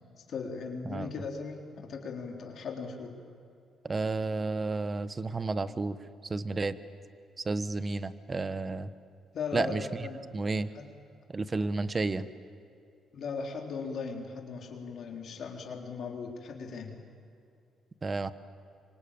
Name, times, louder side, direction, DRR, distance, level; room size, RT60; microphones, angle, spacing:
voice 1, 0.2-3.1 9.3-10.3 10.7-10.9 13.1-17.0, left 5 dB, 60° left, 1 dB, 3.7 m, -38 dB
voice 2, 3.8-6.0 6.2-6.8 7.4-8.9 9.5-9.9 10.3-10.7 11.3-12.2 18.0-18.3, right 3 dB, 30° right, 13 dB, 1.2 m, -31 dB
27.0 x 24.0 x 8.8 m, 2.5 s
cardioid pair, 90°, 0 cm